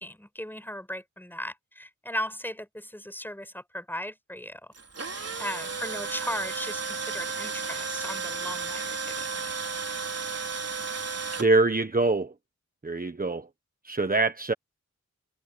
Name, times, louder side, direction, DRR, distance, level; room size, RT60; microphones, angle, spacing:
voice 1, 0.0-4.7 5.4-9.6, equal, 5° left, 7.9 m, -37 dB
Tools, 4.7-11.5, right 5 dB, 55° right, 4.3 m, -33 dB
voice 2, 11.4-12.3 12.8-13.5 13.8-14.5, right 3 dB, 30° right, 1.3 m, -24 dB
wide cardioid pair, 75°, 30 cm